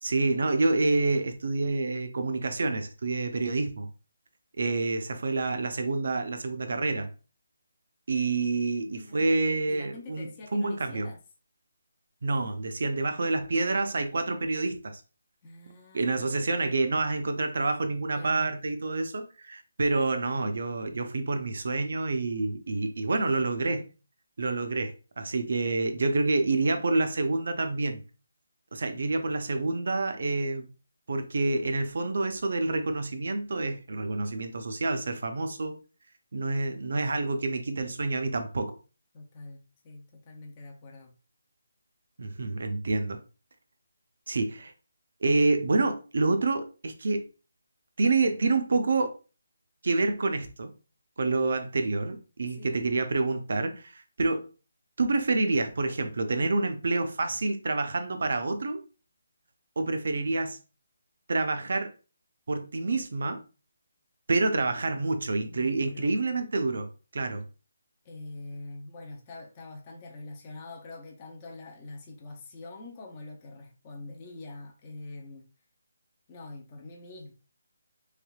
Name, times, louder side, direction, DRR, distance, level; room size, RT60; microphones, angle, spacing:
voice 1, 0.0-3.9 4.6-7.1 8.1-11.1 12.2-15.0 15.9-23.9 24.4-28.0 28.7-30.7 31.1-35.8 36.3-38.7 42.2-43.2 44.3-44.7 45.2-47.3 48.0-49.1 49.8-50.7 51.2-54.5 55.0-58.8 59.8-60.6 61.3-61.9 62.5-63.4 64.3-67.4, right 3 dB, 55° right, 0.6 m, -28 dB
voice 2, 8.9-9.2 9.7-11.2 15.4-16.4 18.1-18.5 28.9-29.0 39.1-41.1 52.6-52.9 65.4-66.1 68.0-75.5 76.3-77.3, left 2 dB, 20° left, 0.5 m, -45 dB
3.5 x 3.3 x 2.3 m
hypercardioid pair, 175°, 0 cm